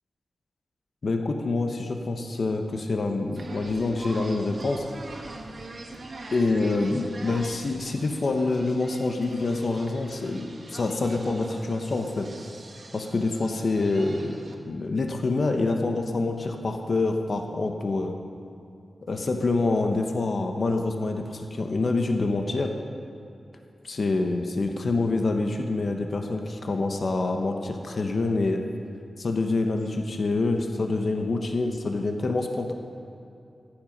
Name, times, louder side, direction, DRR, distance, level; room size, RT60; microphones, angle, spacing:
voice 1, 1.0-4.8 6.3-12.3 12.9-18.2 19.1-22.7 23.8-28.6 29.2-32.7, left 3 dB, 60° left, 4 dB, 1.1 m, -26 dB
sound 1, 3.4-14.5, right 2 dB, 60° right, 1.5 m, -43 dB
15.0 x 10.5 x 5.4 m, 2.6 s
wide cardioid pair, 85°, 0 cm